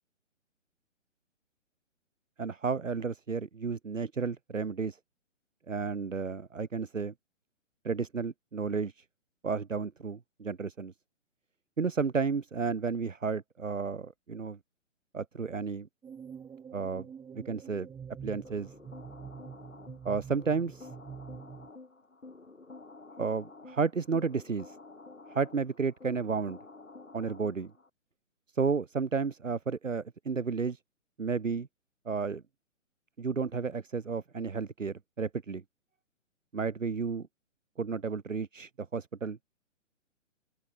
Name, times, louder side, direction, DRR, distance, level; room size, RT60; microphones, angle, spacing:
voice 1, 2.4-5.0 5.7-7.1 7.8-8.9 9.4-10.9 11.8-14.6 15.1-15.9 16.7-17.1 17.3-17.9 18.2-18.7 20.0-20.9 23.2-24.8 25.3-26.6 27.1-27.7 28.5-30.8 31.2-31.7 32.0-32.4 33.2-35.6 36.5-37.3 37.8-39.4, right 5 dB, 75° right, 1.5 m, -32 dB
sound 1, 16.0-21.7, right 7 dB, 10° right, 2.3 m, -46 dB
sound 2, 18.4-27.9, left 3 dB, 80° left, 3.1 m, -50 dB
open air
figure-of-eight pair, 130°, 38 cm